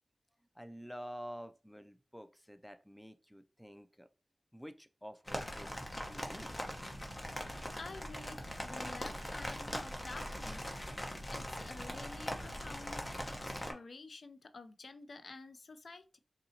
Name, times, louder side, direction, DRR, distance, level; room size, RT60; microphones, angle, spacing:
voice 1, 0.6-4.1 4.5-6.5, equal, ahead, 0.4 m, -49 dB
sound 1, 5.3-13.7, equal, 30° left, 0.8 m, -41 dB
voice 2, 7.5-16.2, left 3 dB, 70° left, 0.4 m, -50 dB
4.0 x 2.9 x 2.7 m
wide cardioid pair, 65°, 0 cm